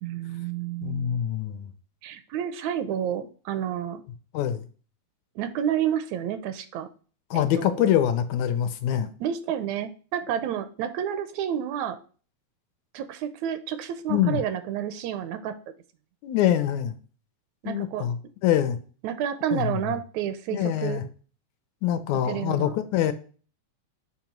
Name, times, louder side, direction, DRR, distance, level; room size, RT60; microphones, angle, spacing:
voice 1, 0.0-1.2 2.0-4.0 5.4-6.9 7.3-7.9 9.2-12.0 12.9-15.5 17.6-18.1 19.0-21.0 22.3-22.7, right 9 dB, 85° right, 11 dB, 1.9 m, -30 dB
voice 2, 0.8-1.7 4.3-4.7 7.3-9.1 14.1-14.4 16.2-17.0 17.7-18.8 19.5-19.9 20.5-21.0 21.8-23.1, left 11 dB, 85° left, 10 dB, 2.0 m, -25 dB
7.0 x 2.9 x 5.9 m, 0.39 s
omnidirectional pair, 3.3 m